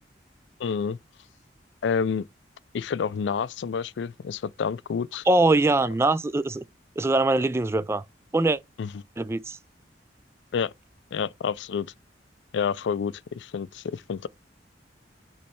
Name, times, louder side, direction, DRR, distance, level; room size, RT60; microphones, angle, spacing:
voice 1, 0.6-1.0 1.8-2.3 2.7-5.2 8.8-8.9 10.5-10.7 11.1-11.9 12.5-14.3, left 6 dB, 80° left, 0.4 m, -28 dB
voice 2, 5.3-6.6 7.0-8.0 8.3-8.6 9.2-9.6, right 2 dB, 15° right, 0.3 m, -22 dB
8.4 x 3.1 x 4.2 m
head